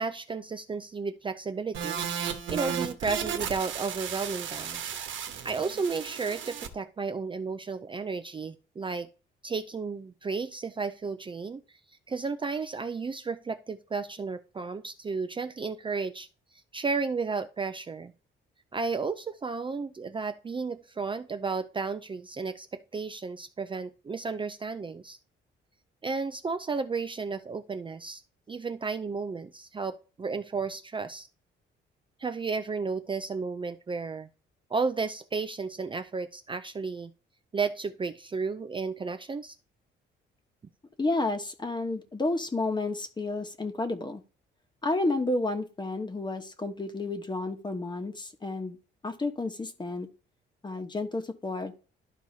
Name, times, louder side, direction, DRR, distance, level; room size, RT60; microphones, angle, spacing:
voice 1, 0.0-2.0 2.5-4.8 5.4-9.1 9.4-11.8 12.1-16.3 16.7-18.1 18.7-25.2 26.0-28.2 28.5-31.3 32.2-34.3 34.7-37.1 37.5-39.6, right 4 dB, 25° right, 9 dB, 0.5 m, -33 dB
sound 1, 1.7-6.7, right 8 dB, 75° right, 1.2 m, -34 dB
voice 2, 41.0-44.2 44.8-48.8 49.0-50.1 50.6-51.9, left 2 dB, 20° left, 7 dB, 1.2 m, -31 dB
12.0 x 4.6 x 2.8 m, 0.35 s
cardioid pair, 90°, 20 cm